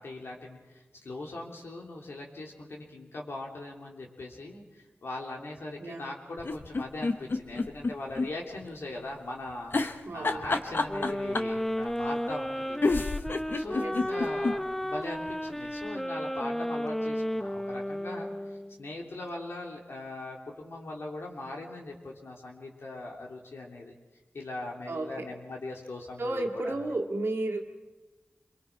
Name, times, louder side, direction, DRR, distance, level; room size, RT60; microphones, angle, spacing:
voice 1, 0.0-12.9 13.5-23.9 24.3-26.8, left 2 dB, 85° left, -1 dB, 3.2 m, -40 dB
voice 2, 5.8-6.1 10.1-10.6 13.7-14.0 24.9-25.3 26.2-27.6, right 2 dB, 80° right, 1 dB, 2.1 m, -32 dB
sound 1, 6.4-8.3 8.6-8.7 9.7-11.6 12.5-12.6 12.8-14.6 15.0-15.1 15.3-15.4, left 3 dB, 60° left, 1.0 m, -28 dB
sound 2, 10.9-18.8, equal, 5° left, 0.8 m, -33 dB
27.5 x 23.0 x 4.6 m, 1.2 s
cardioid pair, 50°, 4 cm